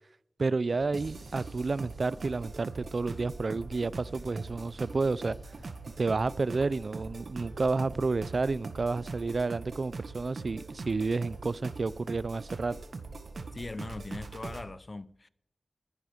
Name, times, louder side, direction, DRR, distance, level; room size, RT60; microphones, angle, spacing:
voice 1, 0.4-5.4 6.0-12.8, right 3 dB, 60° right, 0.5 m, -30 dB
sound 1, 0.7-8.4, left 1 dB, 20° left, 4.9 m, -54 dB
sound 2, 0.9-14.7, right 3 dB, 80° right, 1.7 m, -42 dB
voice 2, 13.5-15.3, left 2 dB, 35° left, 0.6 m, -40 dB
21.0 x 10.5 x 5.1 m
wide cardioid pair, 90°, 0 cm